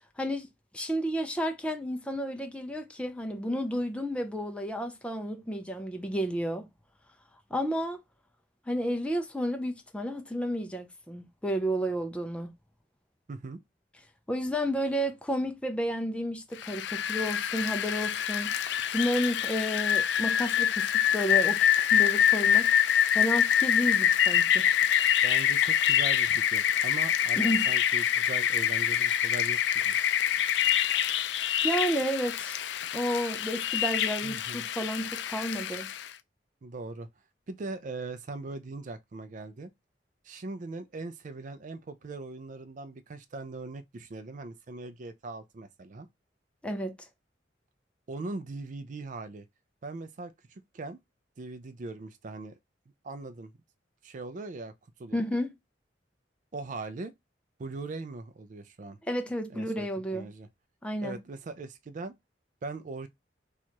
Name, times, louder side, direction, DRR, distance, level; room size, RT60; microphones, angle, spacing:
voice 1, 0.2-0.5 0.7-6.6 7.5-8.0 8.7-12.5 14.3-22.8 23.1-24.7 27.4-27.7 31.6-32.6 32.9-35.9 46.6-46.9 55.1-55.5 59.0-60.3 60.8-61.2, equal, 5° left, 0.5 m, -31 dB
voice 2, 13.3-13.6 25.2-27.4 27.7-30.0 34.2-34.7 36.6-37.1 37.5-39.7 40.2-46.1 48.1-49.4 49.8-51.0 51.4-52.6 53.0-53.5 54.0-54.7 55.0-55.2 56.5-57.1 57.6-59.0 59.5-60.5 61.0-62.1 62.6-63.1, right 3 dB, 45° right, 0.4 m, -40 dB
Rain, 16.6-36.1, left 9 dB, 70° left, 0.3 m, -26 dB
2.9 x 2.4 x 4.3 m
head